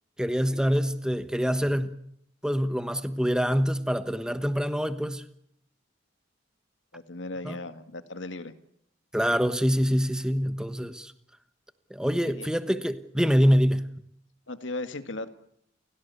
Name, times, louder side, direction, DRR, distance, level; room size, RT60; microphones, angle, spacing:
voice 1, 0.2-2.0 2.4-5.2 7.4-7.6 9.1-11.1 11.9-13.9, equal, 5° right, 1.2 m, -25 dB
voice 2, 6.9-8.5 12.3-12.5 14.5-15.3, left 2 dB, 85° left, 1.9 m, -36 dB
30.0 x 17.0 x 8.4 m
head